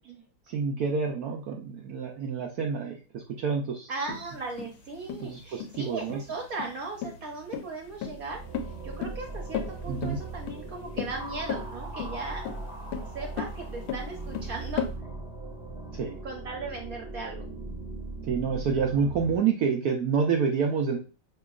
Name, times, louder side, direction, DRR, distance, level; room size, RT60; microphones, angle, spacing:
voice 1, 0.5-3.9 5.2-6.2 9.9-10.2 15.9-16.2 18.3-21.0, right 6 dB, 80° right, 1 dB, 0.8 m, -28 dB
voice 2, 3.9-8.4 8.8-12.5 13.1-14.9 16.2-17.5, right 3 dB, 55° right, 0 dB, 1.1 m, -37 dB
sound 1, 4.1-14.9, left 7 dB, 90° left, 1.5 m, -36 dB
sound 2, 7.8-19.4, right 3 dB, 20° left, 1.7 m, -39 dB
6.5 x 2.9 x 2.3 m, 0.36 s
omnidirectional pair, 2.3 m